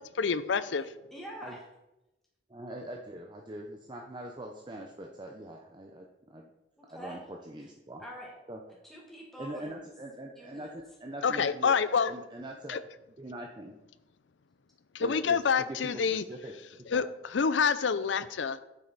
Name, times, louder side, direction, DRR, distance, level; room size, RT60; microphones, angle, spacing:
voice 1, 0.1-0.9 11.2-12.1 12.7-12.8 14.9-16.2 16.9-18.6, left 6 dB, 80° left, 14 dB, 0.5 m, -27 dB
voice 2, 1.1-1.6 6.8-7.2 8.0-8.3 8.8-9.8 10.3-10.7, equal, ahead, -3 dB, 1.6 m, -45 dB
voice 3, 2.5-6.5 6.9-8.0 8.5-8.6 9.4-11.7 12.1-12.8 13.2-13.7 15.0-15.7 16.1-16.5 16.9-17.0, right 1 dB, 25° right, 1 dB, 0.7 m, -43 dB
9.3 x 7.8 x 4.1 m, 0.95 s
head